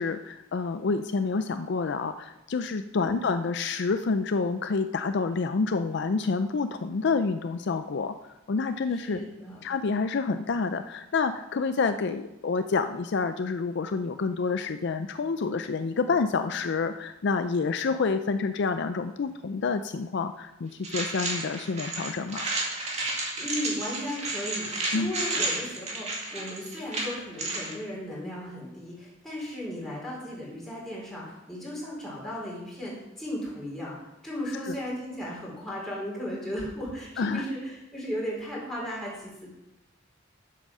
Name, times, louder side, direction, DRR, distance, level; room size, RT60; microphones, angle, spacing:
voice 1, 0.0-8.2 8.5-9.2 9.6-22.5 24.9-25.1 34.7-34.8 37.2-37.4, left 4 dB, 60° left, 9 dB, 0.4 m, -28 dB
voice 2, 8.9-9.6 23.4-33.9 34.2-39.5, equal, ahead, -6 dB, 4.1 m, -36 dB
sound 1, 20.8-27.7, right 2 dB, 35° right, 2.3 m, -31 dB
8.3 x 7.8 x 6.2 m, 0.95 s
head